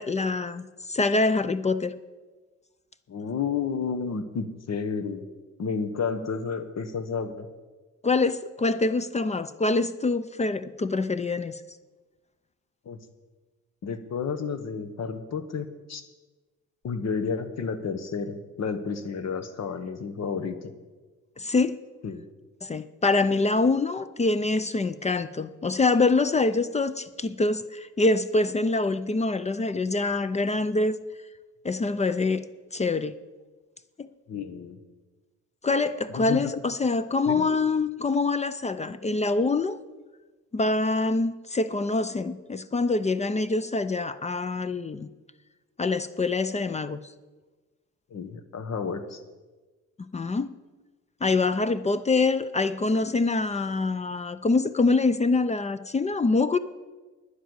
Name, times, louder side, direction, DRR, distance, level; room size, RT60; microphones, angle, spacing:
voice 1, 0.0-1.9 8.0-11.6 21.4-21.8 22.6-31.0 31.6-32.4 32.7-33.2 34.0-34.1 35.6-39.8 40.5-45.1 45.8-47.0 50.0-50.5 51.2-56.6, left 3 dB, 25° left, 13 dB, 0.4 m, -25 dB
voice 2, 3.1-5.2 5.6-7.5 12.8-13.0 13.8-16.0 16.8-20.7 22.0-22.2 34.3-34.8 36.1-36.4 37.3-37.4 48.1-49.2, left 5 dB, 60° left, 10 dB, 1.2 m, -31 dB
10.5 x 10.0 x 7.9 m, 1.3 s
wide cardioid pair, 145°, 30 cm